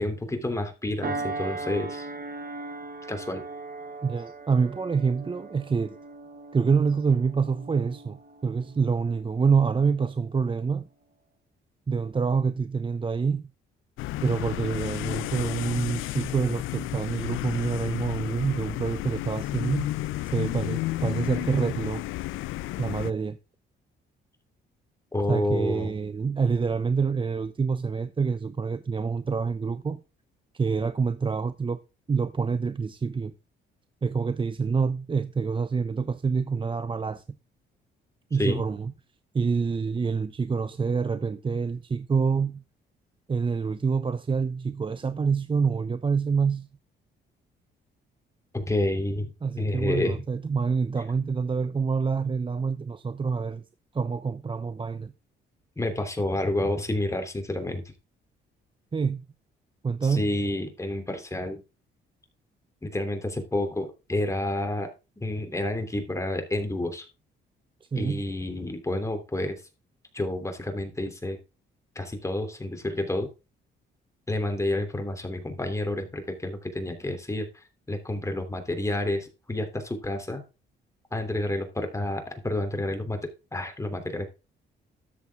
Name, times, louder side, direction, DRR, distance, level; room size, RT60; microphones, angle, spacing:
voice 1, 0.0-2.1 3.1-3.4 25.1-25.9 38.4-38.6 48.5-49.3 49.6-50.2 55.8-57.8 60.0-61.6 62.8-64.9 65.2-67.0 68.0-69.6 70.1-71.4 71.9-73.3 74.3-77.5 77.9-80.4 81.1-83.2 83.5-84.3, left 1 dB, 15° left, 3.2 m, -29 dB
sound 1, 1.0-9.9 10.3-10.6, right 3 dB, 50° right, 3.0 m, -39 dB
voice 2, 4.0-6.0 6.5-10.9 11.9-13.5 14.2-19.9 20.3-22.0 22.8-23.4 25.3-30.0 30.5-31.8 32.1-33.3 34.0-37.4 38.3-38.9 39.3-42.6 43.3-46.7 49.4-53.6 53.9-55.1 58.9-59.2 59.8-60.3 67.9-68.2, right 5 dB, 25° right, 0.7 m, -26 dB
sound 2, 14.0-23.1, left 17 dB, 85° left, 0.5 m, -32 dB
13.0 x 7.5 x 3.6 m
cardioid pair, 90°, 20 cm